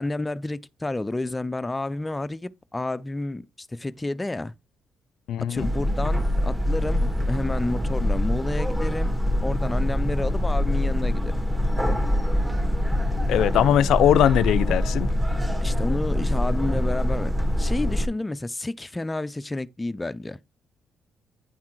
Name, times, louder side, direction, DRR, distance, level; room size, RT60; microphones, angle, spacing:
voice 1, 0.0-4.5 5.4-9.1 9.4-11.3 15.6-20.4, left 2 dB, 15° left, 0.4 m, -30 dB
voice 2, 5.3-5.7 13.3-15.1, left 10 dB, 80° left, 0.4 m, -20 dB
sound 1, 5.5-18.1, left 1 dB, 10° right, 1.5 m, -24 dB
9.5 x 3.6 x 4.5 m
cardioid pair, 90°, 0 cm